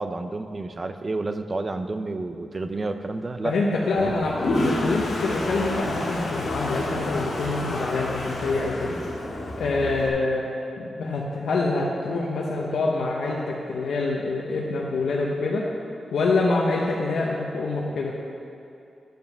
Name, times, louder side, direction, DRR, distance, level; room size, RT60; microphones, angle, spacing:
voice 1, 0.0-3.5 4.0-4.2, right 2 dB, 25° right, 8 dB, 0.4 m, -30 dB
voice 2, 3.4-9.0 9.4-15.7 16.1-18.1, left 3 dB, 85° left, -3 dB, 0.8 m, -26 dB
Toilet flush, 3.9-10.1, left 1 dB, 65° left, 1.6 m, -29 dB
8.9 x 5.5 x 6.0 m, 2.6 s
wide cardioid pair, 160°, 0 cm